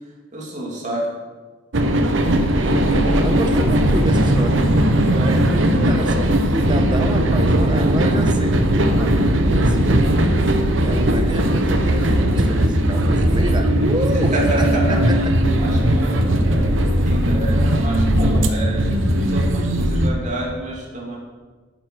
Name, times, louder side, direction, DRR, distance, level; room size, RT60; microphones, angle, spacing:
voice 1, 0.3-1.1 13.5-13.9 14.3-16.7 17.0-21.2, right 1 dB, 40° right, -3 dB, 3.0 m, -28 dB
sound 1, 1.7-20.1, right 1 dB, 80° right, 1.0 m, -18 dB
voice 2, 2.5-4.7 5.0-10.4 10.8-15.3, right 1 dB, 25° right, 5 dB, 1.2 m, -29 dB
9.4 x 9.2 x 6.3 m, 1.4 s
head